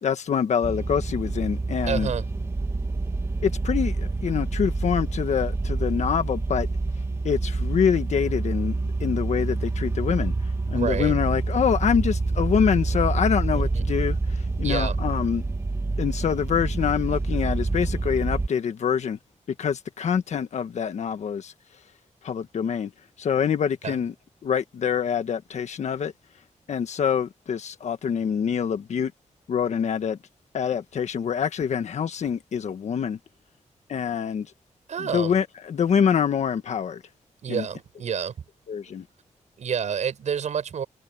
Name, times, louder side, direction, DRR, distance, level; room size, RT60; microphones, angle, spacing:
voice 1, 0.0-2.1 3.4-6.7 7.2-10.3 10.7-15.4 16.0-19.2 19.5-21.5 22.2-22.9 23.2-24.1 24.4-26.1 26.7-29.1 29.5-30.2 30.5-33.2 33.9-34.5 35.0-37.0 37.5-37.6 38.7-39.0, left 7 dB, 70° left, 1.5 m, -25 dB
sound 1, 0.6-18.5, right 3 dB, 20° right, 1.7 m, -27 dB
voice 2, 1.9-2.3 10.7-11.2 13.5-13.9 14.6-15.0 23.8-24.0 34.9-35.4 37.4-38.3 39.6-40.8, right 7 dB, 75° right, 7.4 m, -29 dB
wide cardioid pair, 175°, 12 cm